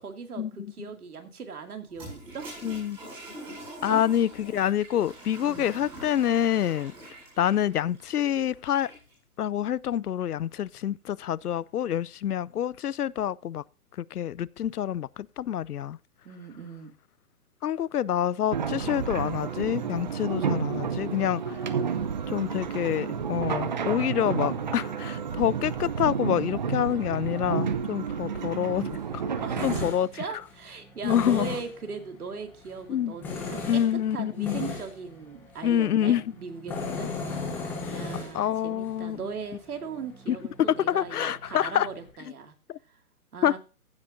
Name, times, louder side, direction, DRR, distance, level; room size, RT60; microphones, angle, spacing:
voice 1, 0.0-2.5 3.9-4.0 5.4-5.7 16.2-16.9 29.4-33.8 34.1-37.1 37.9-42.5 43.3-43.6, right 5 dB, 80° right, 2.5 m, -39 dB
Toilet flush, 1.9-9.1, right 1 dB, 10° right, 6.1 m, -44 dB
voice 2, 2.6-3.0 3.8-6.9 7.4-8.9 9.4-13.6 14.0-16.0 17.6-21.4 22.3-29.2 29.6-30.1 31.0-31.5 32.9-33.2 33.7-34.7 35.6-36.2 38.3-39.2 40.3-40.4 40.9-41.9 42.7-42.8 43.4-43.6, left 10 dB, 90° left, 0.6 m, -27 dB
sound 1, 18.5-29.9, right 6 dB, 30° right, 0.7 m, -30 dB
Tools, 28.0-42.1, left 4 dB, 5° left, 0.9 m, -39 dB
15.0 x 8.3 x 2.6 m
hypercardioid pair, 160°, 44 cm